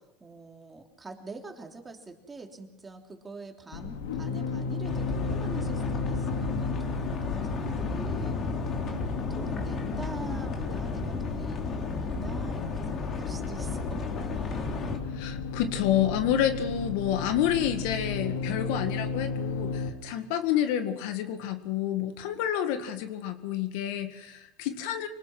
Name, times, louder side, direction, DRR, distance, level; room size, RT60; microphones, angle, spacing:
voice 1, 0.0-8.4 8.9-14.9, right 3 dB, 15° right, 3 dB, 3.2 m, -44 dB
sound 1, 3.7-19.9, left 4 dB, 85° left, 2.5 m, -34 dB
sound 2, 4.8-15.0, left 3 dB, 40° left, 3.3 m, -33 dB
voice 2, 15.1-25.1, left 10 dB, 70° left, 8 dB, 2.0 m, -29 dB
25.5 x 19.5 x 6.2 m, 0.92 s
supercardioid pair, 115°, 0 cm